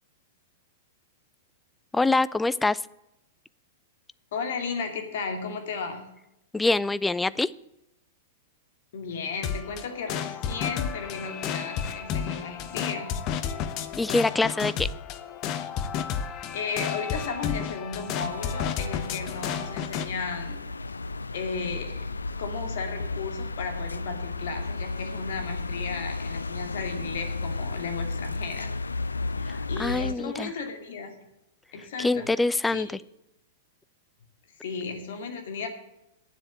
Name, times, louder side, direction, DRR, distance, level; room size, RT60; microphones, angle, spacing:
voice 1, 1.9-2.8 6.5-7.5 14.0-14.9 29.5-30.5 32.0-32.9, left 2 dB, 10° left, 18 dB, 0.4 m, -25 dB
voice 2, 4.3-6.0 8.9-13.1 16.5-20.6 21.3-21.9 22.3-28.7 29.7-31.1 31.7-32.3 32.7-32.9 34.6-35.7, left 5 dB, 60° left, 6 dB, 2.4 m, -34 dB
sound 1, 9.4-20.1, left 8 dB, 40° left, 1.0 m, -32 dB
sound 2, 18.2-30.1, left 3 dB, 85° left, 0.5 m, -33 dB
9.5 x 7.5 x 8.4 m, 0.85 s
figure-of-eight pair, 105°, 0 cm